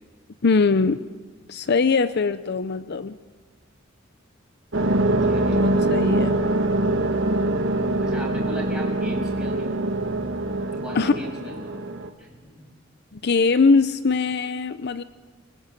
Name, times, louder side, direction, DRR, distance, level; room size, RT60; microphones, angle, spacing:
voice 1, 0.4-1.0 1.5-3.2 5.5-6.4 10.9-11.1 13.1-15.0, left 4 dB, 55° left, 13 dB, 0.6 m, -21 dB
sound 1, 4.7-12.1, right 1 dB, 70° right, 1.5 m, -23 dB
voice 2, 5.2-5.7 8.0-9.8 10.7-11.8 12.2-12.7, right 1 dB, 5° right, -3 dB, 7.1 m, -38 dB
25.0 x 21.0 x 7.4 m, 1.5 s
head